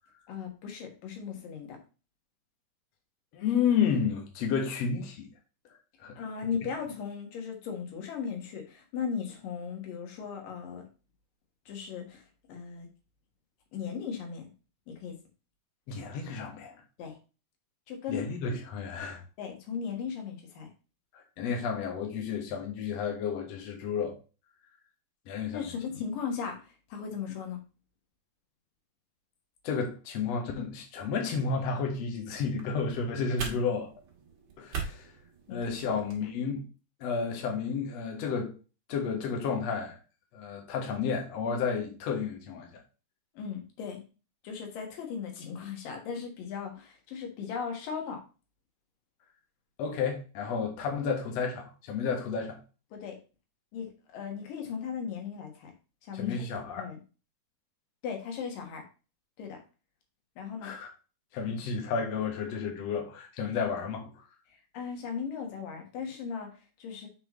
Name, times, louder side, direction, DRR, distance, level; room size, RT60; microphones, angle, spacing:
voice 1, 0.3-1.8 6.2-10.8 11.7-12.9 13.7-14.5 14.9-15.2 17.0-17.2 17.9-18.2 19.4-20.7 25.5-27.6 35.5-35.6 35.9-36.0 43.3-44.0 44.4-48.2 52.9-53.2 53.7-55.7 56.0-56.5 56.8-57.0 58.0-58.8 59.4-59.6 60.4-60.7 64.7-67.1, left 6 dB, 85° left, 3.1 m, -37 dB
voice 2, 3.3-5.3 6.0-6.2 15.9-16.7 18.1-19.2 21.1-24.2 25.3-25.7 29.6-33.9 34.6-35.1 35.5-36.6 37.0-38.6 38.9-40.0 40.3-42.7 49.8-52.6 56.1-56.9 60.6-60.9 61.3-64.2, left 6 dB, 60° left, 2.3 m, -31 dB
sound 1, 32.3-36.2, right 5 dB, 50° right, 2.1 m, -41 dB
7.9 x 5.8 x 3.1 m
omnidirectional pair, 3.8 m